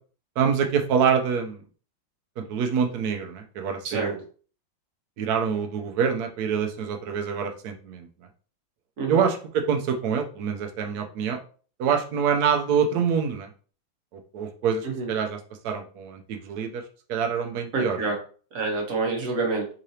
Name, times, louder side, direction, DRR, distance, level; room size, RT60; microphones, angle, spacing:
voice 1, 0.4-1.6 2.4-4.2 5.2-8.1 9.1-11.4 11.8-13.5 14.1-15.4 15.6-16.8 17.1-18.0, right 7 dB, 70° right, 4 dB, 1.0 m, -26 dB
voice 2, 17.7-18.2 18.5-19.6, right 3 dB, 50° right, 0 dB, 1.2 m, -27 dB
3.8 x 3.2 x 2.7 m, 0.40 s
omnidirectional pair, 2.3 m